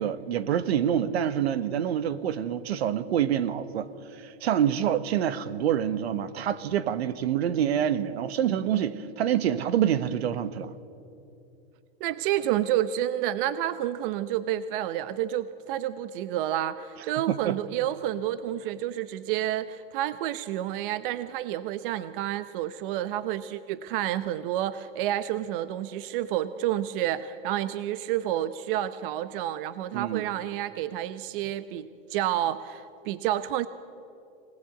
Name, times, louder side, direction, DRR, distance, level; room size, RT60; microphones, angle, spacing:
voice 1, 0.0-3.9 4.2-10.7 17.3-17.6 29.9-30.2, right 9 dB, 80° right, 1.4 m, -26 dB
voice 2, 12.0-33.7, right 12 dB, 55° right, 0.9 m, -29 dB
25.0 x 19.0 x 9.4 m
supercardioid pair, 130°, 31 cm